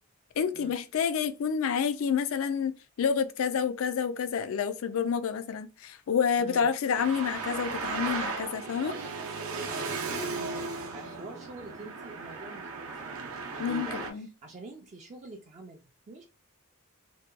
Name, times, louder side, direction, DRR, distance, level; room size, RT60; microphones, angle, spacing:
voice 1, 0.4-2.7 3.0-8.9 13.6-14.3, left 7 dB, 65° left, 0.3 m, -29 dB
voice 2, 6.4-6.7 8.8-16.2, right 2 dB, 30° right, 0.4 m, -46 dB
Traffic noise roadway noise, 6.9-14.1, right 4 dB, 75° right, 0.6 m, -36 dB
2.7 x 2.2 x 2.3 m
head